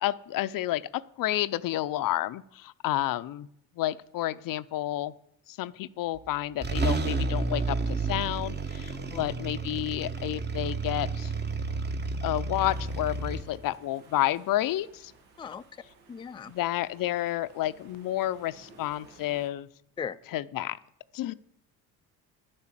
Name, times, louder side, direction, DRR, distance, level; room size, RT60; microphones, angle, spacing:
voice 1, 0.0-3.5 3.8-5.1 5.5-11.3 12.2-15.1 16.5-19.7 20.3-20.8 21.1-21.3, left 14 dB, 60° left, 15 dB, 0.6 m, -30 dB
sound 1, 6.1-6.3 6.6-13.4, right 3 dB, 25° right, 1.2 m, -31 dB
sound 2, 12.6-19.5, right 3 dB, 90° right, 2.5 m, -56 dB
voice 2, 15.4-15.8 16.1-16.5 20.0-20.2, left 7 dB, 15° left, 10 dB, 0.4 m, -38 dB
10.5 x 9.7 x 7.4 m, 0.74 s
cardioid pair, 95°, 38 cm